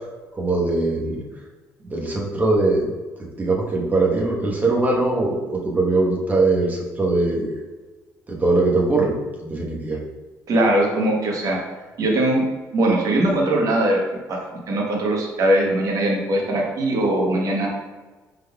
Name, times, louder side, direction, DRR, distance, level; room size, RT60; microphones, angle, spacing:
voice 1, 0.3-1.2 1.9-2.9 3.4-7.6 8.3-10.0, right 2 dB, 25° right, -2 dB, 1.1 m, -21 dB
voice 2, 10.5-11.6 12.0-12.4 12.7-14.0 14.3-14.4 14.7-17.7, right 1 dB, 55° right, -1 dB, 1.1 m, -20 dB
5.1 x 3.7 x 2.3 m, 1.3 s
cardioid pair, 95°, 7 cm